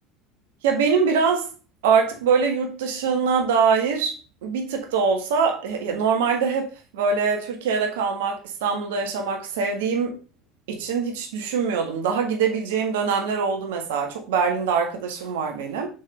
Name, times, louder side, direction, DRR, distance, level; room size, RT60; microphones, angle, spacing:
voice 1, 0.6-1.5 1.8-4.1 4.4-6.7 6.9-10.1 10.7-15.9, right 5 dB, 70° right, 1.7 m, -23 dB
6.4 x 5.7 x 3.3 m
figure-of-eight pair, 70°, 0 cm